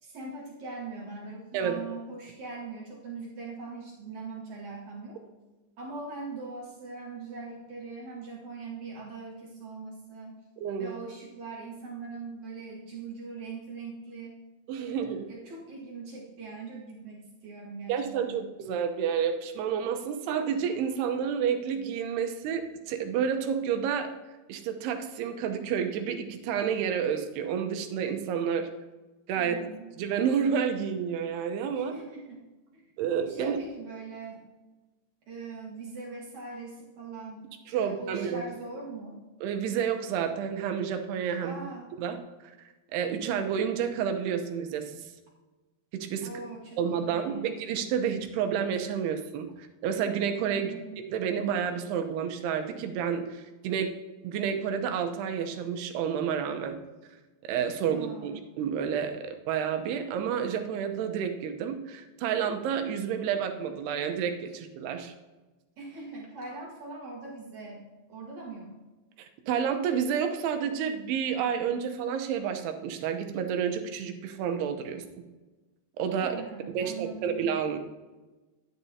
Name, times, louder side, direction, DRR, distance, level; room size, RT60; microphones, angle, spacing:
voice 1, 0.0-5.2 5.8-10.4 10.8-14.3 14.8-18.5 29.3-29.9 31.8-32.8 33.3-34.4 35.3-39.2 41.4-41.9 46.2-47.5 50.5-51.0 57.9-58.4 65.8-68.8 76.2-77.4, right 3 dB, 60° right, -4 dB, 2.2 m, -41 dB
voice 2, 10.6-10.9 14.7-15.3 17.9-24.1 24.5-28.7 29.3-29.6 30.0-32.0 33.0-33.6 37.7-38.4 39.4-41.6 42.0-42.2 42.9-45.0 45.9-46.3 46.8-49.5 49.8-50.7 51.1-53.9 54.2-56.8 57.4-65.1 69.5-75.2 76.0-76.4 76.7-77.8, right 7 dB, 85° right, 6 dB, 2.8 m, -30 dB
12.0 x 9.9 x 2.8 m, 1.2 s
omnidirectional pair, 4.6 m